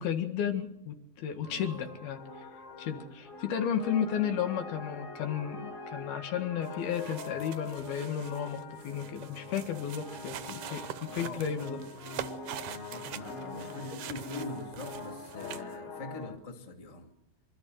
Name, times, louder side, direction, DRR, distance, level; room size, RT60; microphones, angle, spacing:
voice 1, 0.0-2.2 2.8-11.8, left 8 dB, 80° left, 3.8 m, -33 dB
sound 1, 1.4-16.4, left 3 dB, 40° left, 4.8 m, -44 dB
voice 2, 1.4-2.0 11.1-12.1 12.7-17.2, left 3 dB, 15° left, 1.6 m, -44 dB
sound 2, 6.7-15.7, right 12 dB, 70° right, 2.1 m, -44 dB
27.5 x 13.5 x 7.8 m
omnidirectional pair, 4.4 m